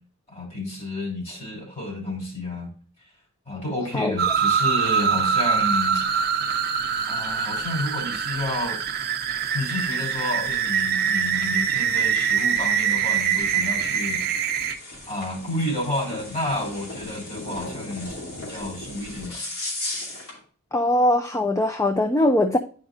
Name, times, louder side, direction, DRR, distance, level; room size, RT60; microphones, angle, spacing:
voice 1, 0.3-2.7 3.4-6.0 7.1-8.8 9.5-14.3 15.1-19.4, left 1 dB, 30° left, -1 dB, 3.0 m, -30 dB
sound 1, 4.2-14.7, right 7 dB, 50° right, 0.7 m, -24 dB
sound 2, 9.4-20.4, left 2 dB, 70° left, 2.6 m, -38 dB
voice 2, 20.7-22.6, left 1 dB, 15° left, 7 dB, 0.4 m, -21 dB
9.5 x 5.1 x 2.5 m, 0.41 s
head